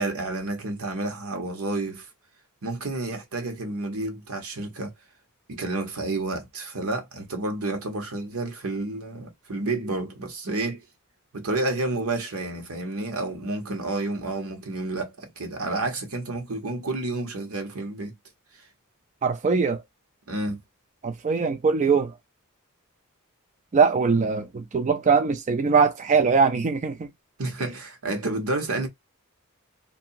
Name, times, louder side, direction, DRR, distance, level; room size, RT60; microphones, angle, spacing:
voice 1, 0.0-2.1 2.6-4.9 5.5-10.8 11.3-18.1 20.3-20.6 27.4-28.9, right 2 dB, 80° right, 1.2 m, -30 dB
voice 2, 19.2-19.8 21.0-22.1 23.7-27.1, right 5 dB, 35° right, 0.4 m, -21 dB
2.8 x 2.6 x 2.6 m
head